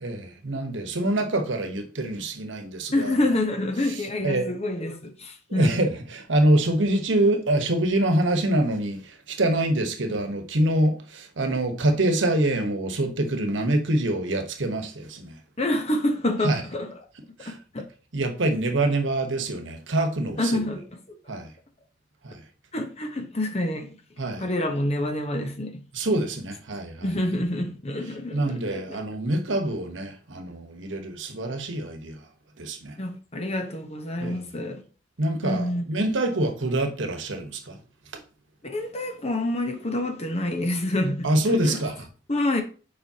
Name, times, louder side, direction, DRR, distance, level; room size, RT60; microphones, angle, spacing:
voice 1, 0.0-3.2 3.9-4.5 5.5-15.4 16.4-16.6 17.4-17.6 18.1-20.6 21.3-21.5 22.2-22.4 24.2-24.4 25.9-27.1 28.3-32.2 32.6-33.0 34.2-34.4 35.2-37.8 41.2-41.9, right 1 dB, 70° right, 1.1 m, -25 dB
voice 2, 2.9-5.8 15.6-17.0 17.5-17.8 20.4-21.0 22.7-23.9 24.4-25.8 27.0-28.8 33.0-34.8 35.4-35.8 38.6-41.8 42.3-42.6, left 1 dB, 35° left, 1.0 m, -27 dB
7.2 x 5.0 x 2.8 m
head